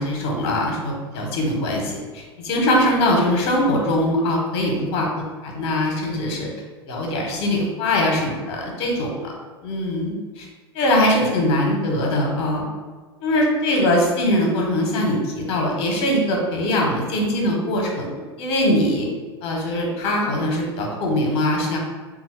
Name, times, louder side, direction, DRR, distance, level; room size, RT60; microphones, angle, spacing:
voice 1, 0.0-5.1 5.4-6.5 6.9-9.3 9.6-10.5 10.7-12.6 13.2-18.1 18.4-19.1 19.4-21.8, left 1 dB, 40° left, 0 dB, 1.1 m, -22 dB
3.9 x 2.4 x 4.6 m, 1.4 s
figure-of-eight pair, 85°, 14 cm